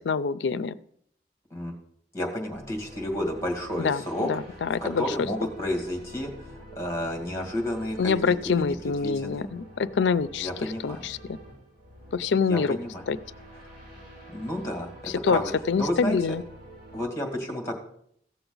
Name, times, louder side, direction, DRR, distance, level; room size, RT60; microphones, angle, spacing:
voice 1, 0.1-0.8 3.8-5.1 8.0-11.2 12.1-12.8 13.1-13.2 15.1-15.4 15.7-16.4, left 5 dB, 80° left, 16 dB, 0.4 m, -26 dB
voice 2, 2.1-4.3 4.8-9.5 10.4-11.1 12.5-13.0 14.3-15.5 15.8-16.2 16.9-17.7, left 1 dB, 15° left, 2 dB, 2.2 m, -31 dB
sound 1, 2.5-17.0, equal, 45° right, 5.0 m, -47 dB
16.0 x 7.0 x 3.9 m, 0.68 s
head